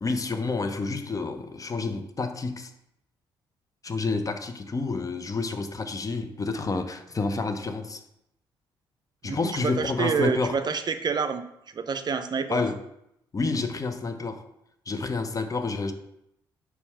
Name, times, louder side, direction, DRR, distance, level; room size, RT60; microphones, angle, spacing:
voice 1, 0.0-2.7 3.8-8.0 9.2-10.6 12.5-12.8 13.3-14.4 14.9-15.9, left 3 dB, 35° left, 8 dB, 0.8 m, -29 dB
voice 2, 9.2-11.4 11.7-12.6, right 6 dB, 40° right, 9 dB, 0.5 m, -28 dB
4.5 x 4.1 x 5.7 m, 0.80 s
hypercardioid pair, 50°, 11 cm